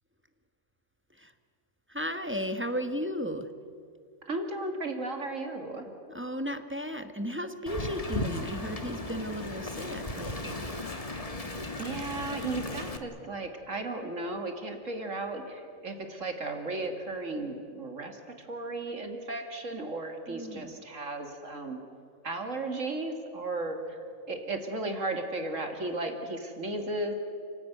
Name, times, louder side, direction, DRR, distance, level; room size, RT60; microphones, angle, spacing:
voice 1, 1.9-3.5 6.1-10.7 20.3-20.8, equal, 10° right, 7 dB, 1.3 m, -35 dB
voice 2, 4.3-5.8 10.9-21.8 22.2-24.0 24.3-27.1, right 2 dB, 60° right, 4 dB, 2.5 m, -35 dB
Wind, 7.7-13.0, left 2 dB, 25° left, 1.6 m, -36 dB
30.0 x 17.0 x 9.3 m, 2.4 s
omnidirectional pair, 1.5 m